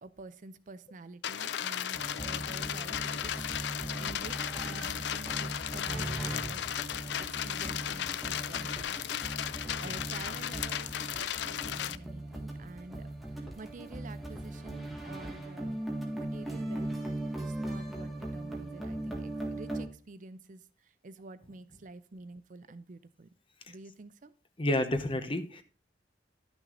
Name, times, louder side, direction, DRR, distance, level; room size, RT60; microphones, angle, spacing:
voice 1, 0.0-3.4 3.7-6.6 7.2-13.1 13.3-15.8 16.1-16.9 17.4-23.3 23.7-24.3, right 3 dB, 45° right, 14 dB, 0.5 m, -49 dB
sound 1, 1.2-12.0, left 10 dB, 75° left, 0.4 m, -35 dB
sound 2, 1.9-19.9, right 1 dB, ahead, 1.6 m, -39 dB
voice 2, 24.6-25.6, left 1 dB, 30° left, 9 dB, 0.9 m, -30 dB
11.5 x 6.2 x 3.8 m, 0.39 s
head